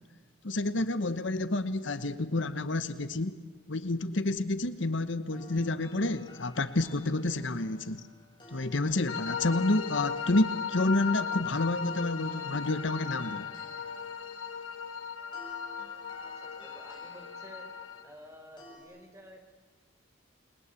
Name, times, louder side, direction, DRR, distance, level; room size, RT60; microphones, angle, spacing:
voice 1, 0.4-3.4 3.7-8.0 8.5-13.5, left 2 dB, 65° left, 1.1 m, -29 dB
sound 1, 5.3-18.8, left 2 dB, 20° left, 7.3 m, -53 dB
sound 2, 9.1-18.0, left 6 dB, 85° left, 2.4 m, -37 dB
voice 2, 16.2-17.7 18.0-19.5, equal, 15° right, 4.7 m, -51 dB
29.5 x 21.5 x 8.4 m
head